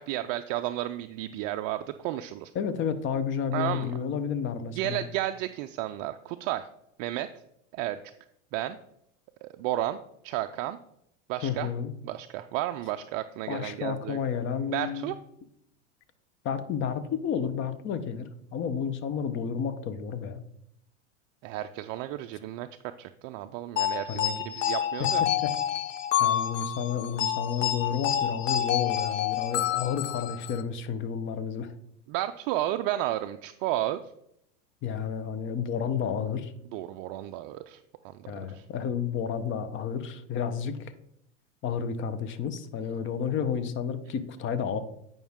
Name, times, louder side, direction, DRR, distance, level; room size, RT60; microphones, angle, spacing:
voice 1, 0.0-2.5 3.5-3.9 4.8-6.7 7.0-7.4 7.7-8.0 8.5-8.8 9.4-10.8 11.3-11.7 12.0-14.2 14.7-15.2 21.4-22.7 23.0-25.2 32.1-34.0 36.7-37.8 38.0-38.6, right 14 dB, 40° right, 8 dB, 0.4 m, -32 dB
voice 2, 2.5-5.0 11.4-11.9 13.5-15.1 16.4-20.4 24.1-24.4 25.0-25.5 26.2-31.7 34.8-36.5 38.3-40.9 41.6-44.8, left 7 dB, 35° left, 11 dB, 0.8 m, -31 dB
sound 1, 23.8-30.6, left 11 dB, 90° left, 0.8 m, -28 dB
9.1 x 5.4 x 3.6 m, 0.76 s
hypercardioid pair, 115°, 37 cm